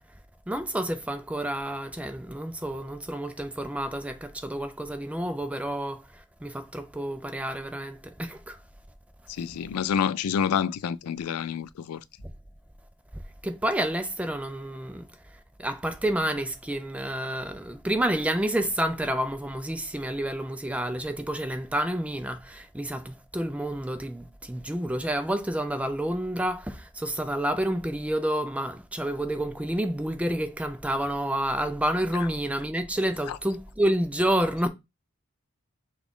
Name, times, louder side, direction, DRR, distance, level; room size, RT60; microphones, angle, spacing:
voice 1, 0.5-8.6 13.4-15.1 15.6-34.7, right 1 dB, 5° right, 0.4 m, -29 dB
voice 2, 9.3-12.0 33.3-33.4, left 7 dB, 90° left, 0.3 m, -28 dB
6.0 x 2.4 x 3.6 m
head